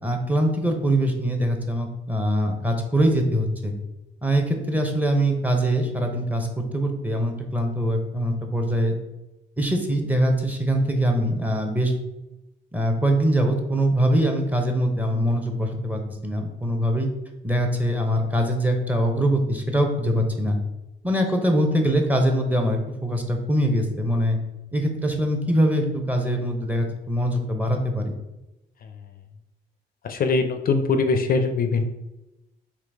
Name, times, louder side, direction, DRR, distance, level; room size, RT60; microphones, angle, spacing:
voice 1, 0.0-3.7 4.2-9.0 9.6-11.9 12.7-17.1 17.4-20.6 21.0-24.4 24.7-28.1, equal, 10° right, 3 dB, 0.6 m, -23 dB
voice 2, 30.0-31.8, left 4 dB, 50° left, 7 dB, 0.4 m, -22 dB
3.8 x 2.8 x 3.4 m, 0.99 s
cardioid pair, 90°, 20 cm